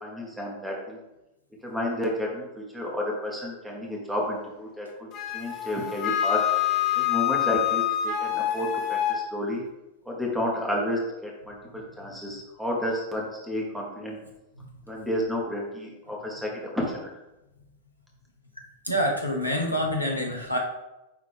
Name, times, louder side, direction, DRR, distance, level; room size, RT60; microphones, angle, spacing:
voice 1, 0.0-1.0 1.6-5.1 5.3-6.4 7.0-9.6 10.1-14.2 14.9-17.1, left 1 dB, 5° right, -2 dB, 1.5 m, -31 dB
Wind instrument woodwind instrument, 5.1-9.2, left 11 dB, 40° left, 1.3 m, -26 dB
voice 2, 18.8-20.6, equal, 90° left, 0 dB, 1.3 m, -26 dB
9.6 x 3.3 x 3.7 m, 0.97 s
figure-of-eight pair, 90°, 0 cm